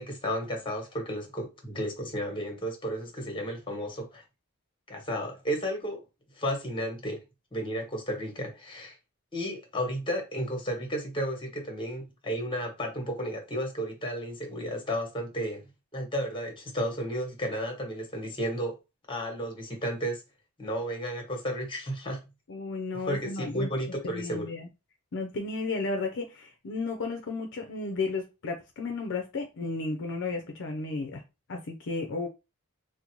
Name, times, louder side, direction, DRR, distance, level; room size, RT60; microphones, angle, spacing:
voice 1, 0.0-4.2 4.9-6.0 6.4-7.2 7.5-8.9 9.3-15.6 15.9-18.7 19.1-20.2 20.6-22.2 23.1-24.5, equal, 25° left, 1.2 m, -33 dB
voice 2, 22.5-23.7 24.0-24.7 25.1-31.2 31.5-32.3, left 3 dB, 60° left, 0.5 m, -33 dB
3.9 x 2.1 x 3.0 m
head